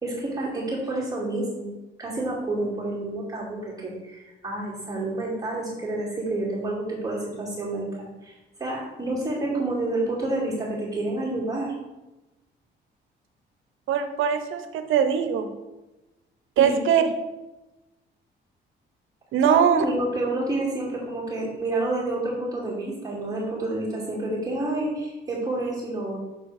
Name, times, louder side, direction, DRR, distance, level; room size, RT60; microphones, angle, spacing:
voice 1, 0.0-1.7 2.0-11.7 16.6-16.7 19.4-26.2, right 2 dB, 20° right, -8 dB, 2.4 m, -29 dB
voice 2, 13.9-15.5 16.6-17.0 19.3-19.8, right 8 dB, 85° right, 8 dB, 0.8 m, -21 dB
7.1 x 4.0 x 4.8 m, 1.0 s
cardioid pair, 90°, 20 cm